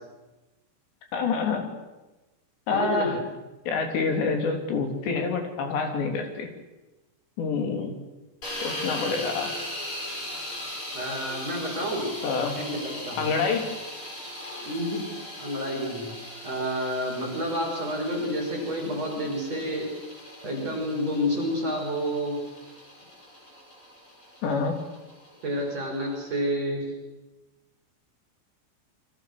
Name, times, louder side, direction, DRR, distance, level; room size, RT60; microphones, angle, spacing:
voice 1, 1.1-1.7 2.7-3.2 3.7-6.5 7.4-7.9 8.4-9.5 12.2-12.5 13.2-13.7 24.4-24.8, left 4 dB, 75° left, 4 dB, 5.5 m, -27 dB
voice 2, 2.7-3.2 10.9-12.1 12.6-13.3 14.6-15.0 15.4-16.1 16.4-19.9 20.4-22.4 25.4-26.8, equal, 35° right, -1 dB, 6.8 m, -29 dB
sound 1, 8.4-26.4, left 1 dB, 30° left, 6.8 m, -39 dB
28.5 x 24.0 x 6.7 m, 1.1 s
omnidirectional pair, 5.0 m